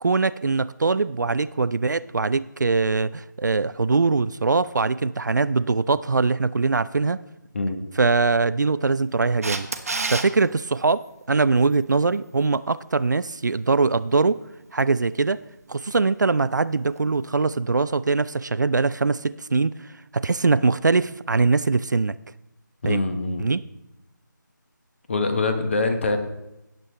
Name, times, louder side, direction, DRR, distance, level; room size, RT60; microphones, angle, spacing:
voice 1, 0.0-7.2 8.0-9.7 10.1-14.4 14.7-15.4 15.7-19.9 20.1-22.1 22.8-23.0 23.4-23.6, right 4 dB, 65° right, 16 dB, 0.4 m, -22 dB
Camera, 9.4-10.3 17.0-17.1, right 3 dB, 45° right, 1.0 m, -27 dB
voice 2, 22.8-23.4 25.1-26.2, left 3 dB, 35° left, 7 dB, 1.2 m, -24 dB
17.0 x 7.5 x 3.2 m, 0.91 s
figure-of-eight pair, 160°, 11 cm